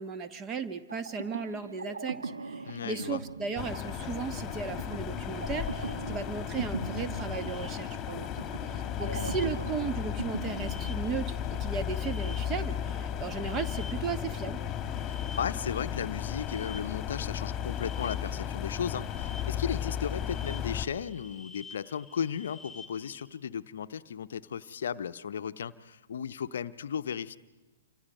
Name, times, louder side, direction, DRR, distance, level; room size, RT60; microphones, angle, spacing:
voice 1, 0.0-8.3 8.6-14.6, right 5 dB, 25° right, 11 dB, 1.3 m, -36 dB
sound 1, 0.9-11.6, right 3 dB, 80° right, 1.2 m, -41 dB
voice 2, 2.6-3.2 9.0-9.4 15.0-27.4, left 8 dB, 65° left, 12 dB, 0.7 m, -35 dB
sound 2, 3.6-20.9, left 9 dB, 25° left, 1.7 m, -35 dB
sound 3, 5.0-23.2, left 3 dB, 5° right, 3.8 m, -51 dB
28.5 x 25.5 x 5.3 m, 1.2 s
figure-of-eight pair, 110°, 0 cm